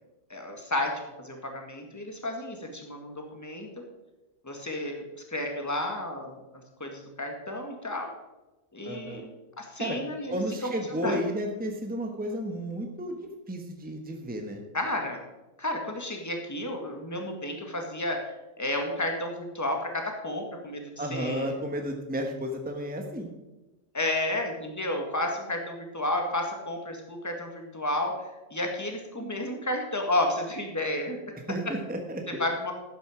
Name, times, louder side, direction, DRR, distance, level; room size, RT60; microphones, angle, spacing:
voice 1, 0.3-0.9 1.2-3.7 4.4-5.0 5.3-6.4 6.8-8.1 8.7-9.3 9.6-10.7 11.0-11.2 14.7-15.2 15.6-21.5 23.9-28.1 28.5-31.2 32.3-32.7, left 1 dB, 15° left, 2 dB, 1.8 m, -31 dB
voice 2, 8.8-9.2 9.8-10.0 10.3-13.2 13.5-14.6 21.0-23.3 31.5-32.4, equal, 5° right, 3 dB, 1.2 m, -32 dB
12.0 x 9.2 x 5.0 m, 1.1 s
omnidirectional pair, 1.4 m